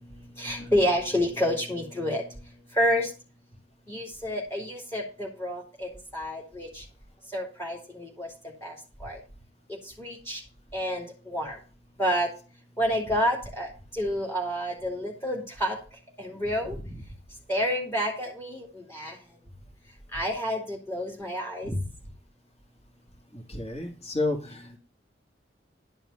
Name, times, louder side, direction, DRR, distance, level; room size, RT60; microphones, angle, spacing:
voice 1, 0.4-2.2 2.8-3.1 3.9-6.8 7.3-8.3 8.6-8.7 9.0-9.2 10.0-10.4 10.7-11.6 12.0-12.3 12.8-13.7 14.0-15.8 16.2-16.8 17.5-18.7 18.9-19.1 20.1-21.7, equal, 15° left, -1 dB, 2.8 m, -29 dB
voice 2, 23.3-24.8, left 2 dB, 35° left, 1 dB, 3.2 m, -31 dB
12.0 x 5.6 x 5.8 m, 0.34 s
head